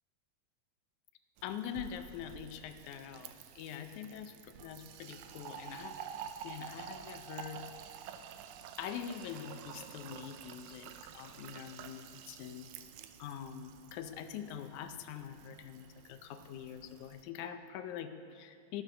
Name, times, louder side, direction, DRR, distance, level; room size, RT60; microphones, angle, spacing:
voice 1, 1.4-6.0 6.4-7.6 8.8-12.7 13.2-18.8, left 9 dB, 80° left, 9 dB, 2.1 m, -44 dB
Fill (with liquid), 1.4-17.2, right 9 dB, 80° right, 1.9 m, -50 dB
14.5 x 7.8 x 6.3 m, 2.4 s
omnidirectional pair, 3.5 m